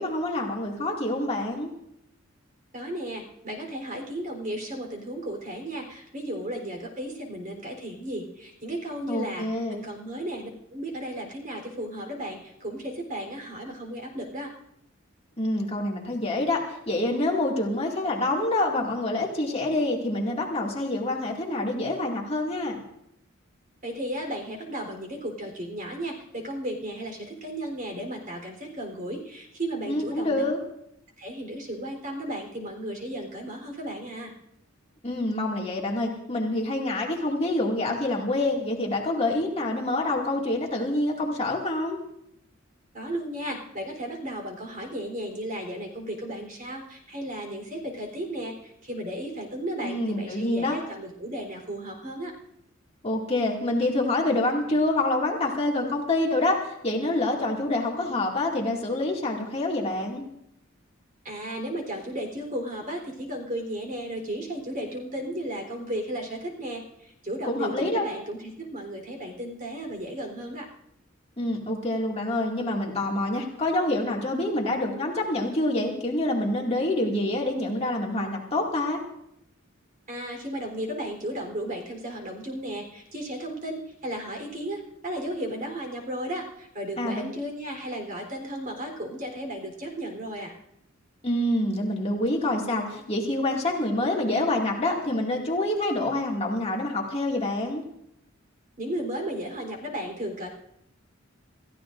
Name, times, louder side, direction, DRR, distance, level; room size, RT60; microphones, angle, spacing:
voice 1, 0.0-1.7 9.1-9.8 15.4-22.7 29.9-30.6 35.0-42.0 49.8-50.8 53.0-60.2 67.4-68.0 71.4-79.0 87.0-87.2 91.2-97.8, left 1 dB, 30° left, -1 dB, 2.2 m, -26 dB
voice 2, 2.7-14.5 23.8-30.5 31.2-34.3 42.9-52.3 61.2-70.7 80.1-90.6 98.8-100.5, right 1 dB, 40° right, 2 dB, 3.7 m, -34 dB
28.0 x 14.5 x 2.6 m, 0.77 s
head